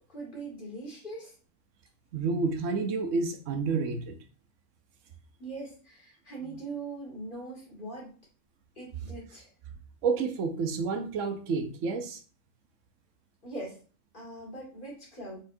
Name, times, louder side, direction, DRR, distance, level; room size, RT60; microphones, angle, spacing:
voice 1, 0.1-1.4 5.4-8.1 8.8-9.5 13.4-13.8 14.1-15.4, right 2 dB, 40° left, -4 dB, 2.2 m, -41 dB
voice 2, 2.1-4.2 10.0-12.2, right 4 dB, 75° right, 6 dB, 1.1 m, -29 dB
4.3 x 4.2 x 2.7 m, 0.37 s
omnidirectional pair, 1.3 m